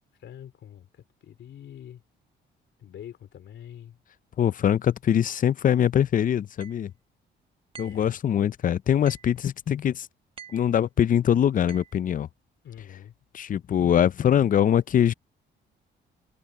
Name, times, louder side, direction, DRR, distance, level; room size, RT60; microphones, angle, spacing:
voice 1, 0.2-2.0 2.8-4.0 7.8-8.2 12.6-13.1, left 10 dB, 70° left, 3.4 m, -45 dB
voice 2, 4.4-6.9 7.8-10.1 10.5-12.3 13.3-15.1, left 9 dB, 45° left, 0.5 m, -23 dB
sound 1, 6.6-6.8 7.7-8.1 9.1-9.4 10.4-10.7 11.7-12.0, right 7 dB, 25° right, 1.4 m, -47 dB
cardioid pair, 90°, 20 cm